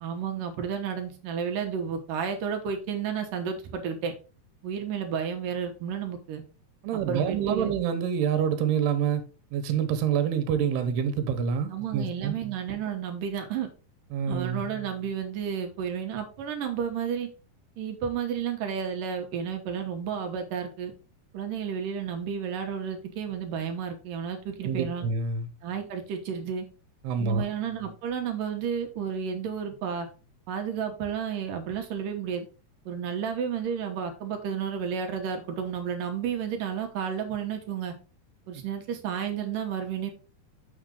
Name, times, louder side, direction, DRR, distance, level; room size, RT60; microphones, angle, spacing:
voice 1, 0.0-4.1 4.6-6.4 7.1-7.7 11.7-13.7 14.3-17.3 17.8-20.9 21.3-25.0 25.6-26.7 27.2-30.1 30.5-32.5 32.9-37.9 38.5-40.1, right 7 dB, 65° right, 2.4 m, -32 dB
voice 2, 6.8-9.2 9.5-12.4 14.1-14.6 24.6-25.5 27.0-27.4, right 7 dB, 85° right, 3.1 m, -27 dB
7.1 x 6.6 x 3.8 m
omnidirectional pair, 4.6 m